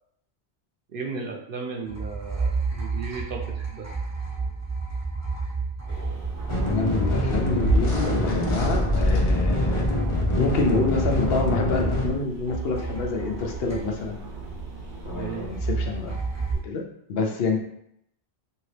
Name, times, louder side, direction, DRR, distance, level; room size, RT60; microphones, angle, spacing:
voice 1, 0.9-3.9 15.1-15.5, right 4 dB, 60° right, 1 dB, 0.7 m, -35 dB
sound 1, 1.9-12.2 12.5-14.3 15.5-16.5, right 4 dB, 20° right, 0.5 m, -31 dB
sound 2, 5.9-16.6, right 3 dB, 90° right, 1.2 m, -40 dB
sound 3, 6.5-12.1, left 1 dB, 40° left, 0.5 m, -24 dB
voice 2, 6.7-9.8 10.3-14.2 15.0-16.1 16.6-16.8 17.1-17.6, left 3 dB, 70° left, 2 dB, 0.8 m, -27 dB
2.9 x 2.8 x 3.2 m, 0.72 s
omnidirectional pair, 1.1 m